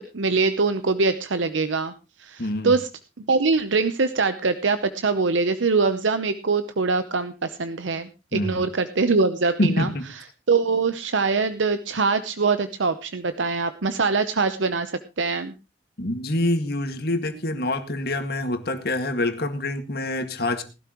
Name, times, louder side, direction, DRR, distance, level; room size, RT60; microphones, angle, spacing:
voice 1, 0.0-1.9 2.2-2.9 3.2-9.9 10.5-15.5, right 4 dB, 85° right, 10 dB, 0.8 m, -23 dB
voice 2, 2.4-2.8 8.3-8.6 9.6-10.1 16.0-20.6, left 1 dB, 55° left, 7 dB, 1.9 m, -26 dB
18.5 x 12.5 x 3.0 m, 0.29 s
head